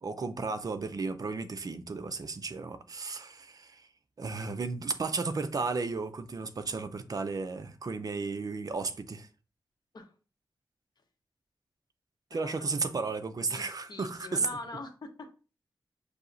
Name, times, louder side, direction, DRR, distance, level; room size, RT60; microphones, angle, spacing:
voice 1, 0.0-3.9 4.2-9.3 12.3-14.5, right 4 dB, 45° right, 0.5 m, -34 dB
voice 2, 12.3-12.8 13.4-15.3, left 3 dB, 55° left, 0.9 m, -44 dB
6.2 x 2.8 x 2.6 m
wide cardioid pair, 100°, 8 cm